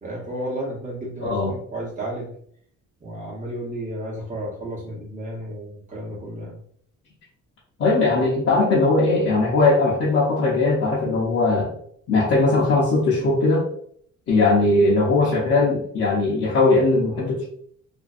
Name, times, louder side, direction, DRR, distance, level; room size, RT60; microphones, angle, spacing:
voice 1, 0.0-2.3 3.0-6.6, right 1 dB, 25° right, -4 dB, 1.0 m, -32 dB
voice 2, 1.2-1.5 7.8-11.8 12.1-13.6 14.3-17.4, left 3 dB, 50° left, -6 dB, 0.7 m, -19 dB
2.5 x 2.2 x 2.4 m, 0.64 s
cardioid pair, 120°, 29 cm